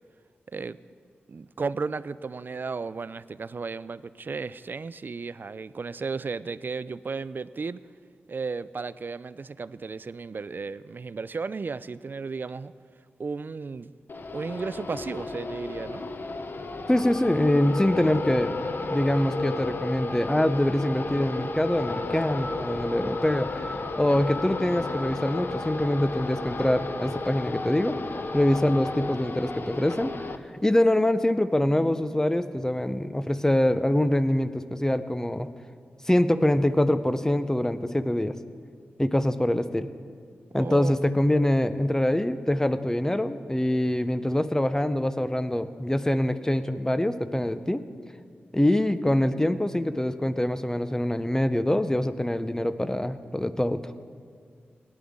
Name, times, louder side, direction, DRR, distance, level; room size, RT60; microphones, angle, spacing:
voice 1, 1.3-7.8 8.3-12.7 13.2-13.9 14.3-16.0 40.5-40.9, right 4 dB, 50° right, 17 dB, 0.3 m, -34 dB
sound 1, 14.1-30.4, left 3 dB, 55° left, 0.7 m, -33 dB
voice 2, 16.9-18.5 18.9-28.0 28.3-30.3 30.6-35.5 36.0-38.4 39.0-39.9 40.5-47.8 48.5-53.8, left 1 dB, 15° left, 12 dB, 0.6 m, -24 dB
18.0 x 11.0 x 3.7 m, 2.1 s
cardioid pair, 50°, 4 cm